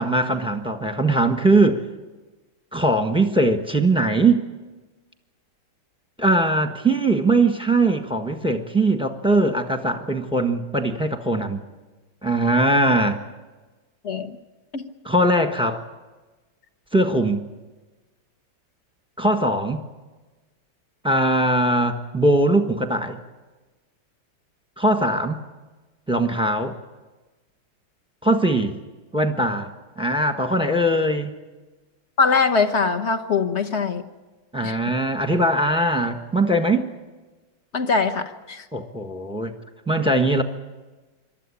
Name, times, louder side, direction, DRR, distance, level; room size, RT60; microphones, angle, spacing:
voice 1, 0.0-1.8 2.7-4.4 6.2-11.6 12.2-13.2 15.0-15.8 16.9-17.4 19.2-19.8 21.0-23.2 24.8-25.4 26.1-26.7 28.2-28.8 29.1-31.3 34.5-36.9 38.7-39.5 39.9-40.4, right 2 dB, 5° right, 6 dB, 1.0 m, -21 dB
voice 2, 14.0-14.4 14.7-14.8 32.2-34.0 34.6-34.7 37.7-38.6, left 4 dB, 40° left, 9 dB, 1.2 m, -22 dB
26.5 x 12.5 x 9.9 m, 1.2 s
omnidirectional pair, 2.2 m